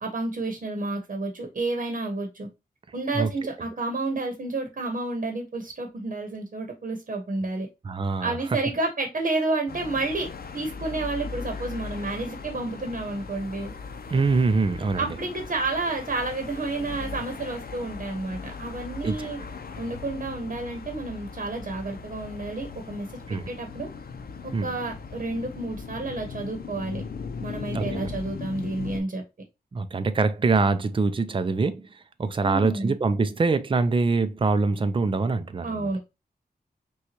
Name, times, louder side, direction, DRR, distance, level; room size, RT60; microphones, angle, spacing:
voice 1, 0.0-2.5 2.9-7.7 8.2-10.3 10.5-13.7 15.0-19.4 19.8-23.9 24.4-27.0 27.4-29.2 32.4-32.9 35.6-36.0, right 2 dB, 55° right, 1.0 m, -30 dB
voice 2, 7.8-8.6 14.1-15.2 19.0-19.3 23.3-23.5 24.5-24.7 27.7-28.1 29.7-31.8 32.2-35.9, right 4 dB, 30° right, 0.4 m, -24 dB
sound 1, 9.7-29.0, left 5 dB, 70° left, 0.6 m, -38 dB
5.8 x 2.4 x 2.8 m
wide cardioid pair, 105°, 16 cm